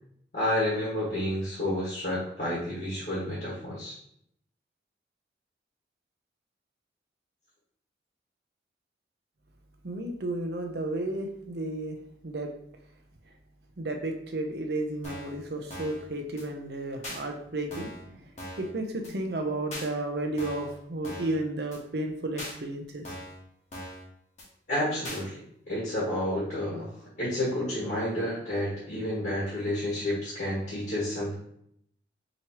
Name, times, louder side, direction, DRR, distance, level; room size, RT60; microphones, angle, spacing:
voice 1, 0.3-3.9 24.7-26.9 27.2-31.3, left 1 dB, 55° left, -7 dB, 1.6 m, -30 dB
voice 2, 9.8-12.0 12.2-12.5 13.8-18.3 18.6-23.2, right 2 dB, 60° right, 3 dB, 0.6 m, -33 dB
sound 1, 15.0-15.4 15.7-16.0 16.4-16.5 17.0-17.2 17.7-18.0 18.4-18.7 19.0-19.1 19.7-19.9 20.4-20.7 21.0-21.4 21.7-21.8 22.4-22.5 23.0-23.4 23.7-24.0 24.4-24.5 25.0-25.2, equal, 40° left, 1.2 m, -40 dB
5.1 x 3.0 x 2.9 m, 0.70 s
head